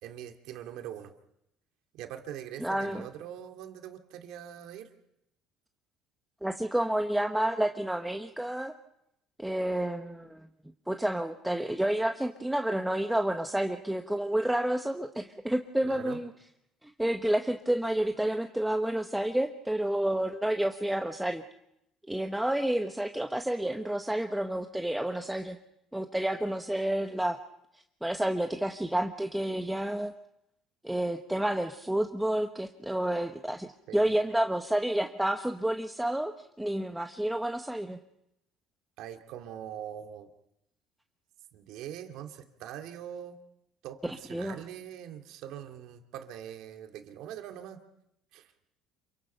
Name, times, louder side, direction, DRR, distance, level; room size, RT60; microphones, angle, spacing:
voice 1, 0.0-1.1 1.9-4.9 15.8-16.2 33.9-34.1 39.0-40.3 41.5-43.4 43.8-47.8 48.3-48.5, right 10 dB, 75° right, 5 dB, 2.4 m, -43 dB
voice 2, 2.6-3.1 6.4-8.7 9.4-10.5 10.9-16.3 16.8-21.4 22.1-25.6 25.9-27.4 28.0-30.1 30.8-38.0 44.0-44.6, right 1 dB, 5° right, 5 dB, 1.1 m, -30 dB
28.0 x 23.5 x 5.7 m, 0.81 s
cardioid pair, 120°, 0 cm